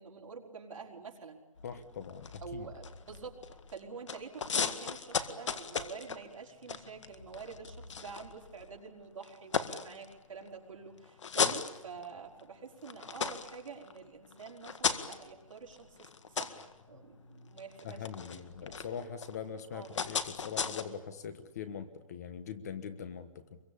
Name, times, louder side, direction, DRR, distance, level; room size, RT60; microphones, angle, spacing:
voice 1, 0.0-1.4 2.4-3.4 3.7-16.1 16.4-18.8 19.7-20.0, right 5 dB, 60° right, 0 dB, 4.9 m, -47 dB
sound 1, 1.6-3.8 4.1-8.8 9.2-10.5 11.0-12.4 12.8-20.8, left 6 dB, 55° left, 1.9 m, -37 dB
voice 2, 1.6-2.7 11.4-11.5 17.8-23.6, left 7 dB, 30° left, 11 dB, 1.3 m, -42 dB
26.0 x 23.0 x 8.6 m, 1.0 s
hypercardioid pair, 175°, 18 cm